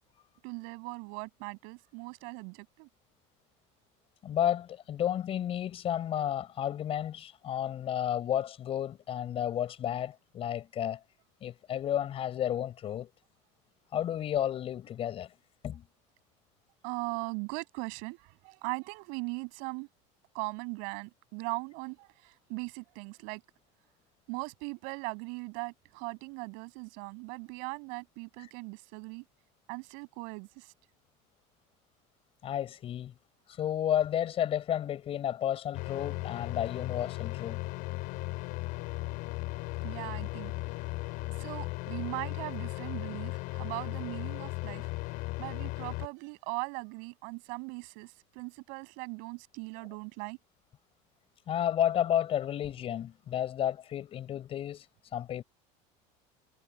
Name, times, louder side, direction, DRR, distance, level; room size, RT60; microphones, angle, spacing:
voice 1, 0.4-2.9 16.8-19.9 20.3-23.4 24.3-29.2 29.7-30.7 39.8-40.5 41.4-44.9 45.4-50.4, right 33 dB, 70° right, 7.7 m, -39 dB
voice 2, 4.2-11.0 11.4-13.1 13.9-15.3 15.6-15.8 32.4-33.1 33.6-37.6 51.5-54.8 55.1-55.4, left 10 dB, 40° left, 5.2 m, -32 dB
sound 1, 35.7-46.1, left 22 dB, 65° left, 7.4 m, -37 dB
supercardioid pair, 130°, 15 cm